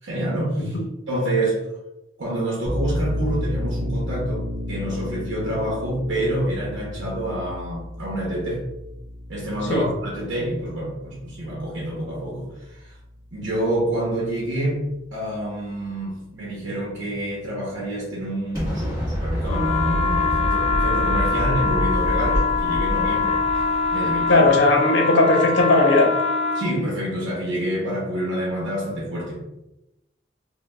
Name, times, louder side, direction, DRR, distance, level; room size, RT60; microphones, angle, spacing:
voice 1, 0.0-0.7 1.1-1.7 2.2-8.6 9.3-13.0 13.3-14.8 15.1-23.4 23.9-24.5 26.5-29.5, right 1 dB, 80° right, -4 dB, 0.8 m, -27 dB
sound 1, 2.7-14.0, left 1 dB, 40° right, 0.7 m, -32 dB
Explosion, 18.5-24.5, equal, 15° right, 1.4 m, -27 dB
sound 2, 19.5-26.7, left 4 dB, 35° left, 0.4 m, -23 dB
voice 2, 24.3-26.1, left 2 dB, 75° left, 1 dB, 0.7 m, -17 dB
5.2 x 2.2 x 2.3 m, 0.93 s
head